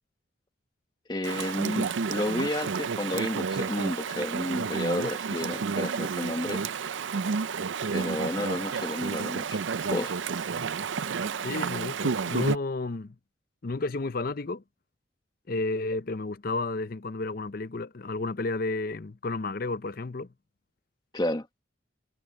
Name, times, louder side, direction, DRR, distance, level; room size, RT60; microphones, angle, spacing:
voice 1, 1.1-6.6 7.9-9.6 9.9-10.1 21.1-21.5, left 1 dB, 20° left, 1.3 m, -31 dB
Chatter / Stream, 1.2-12.6, right 5 dB, 70° right, 0.5 m, -30 dB
voice 2, 11.4-13.1 13.6-14.6 15.5-20.3, left 3 dB, 45° left, 0.6 m, -32 dB
head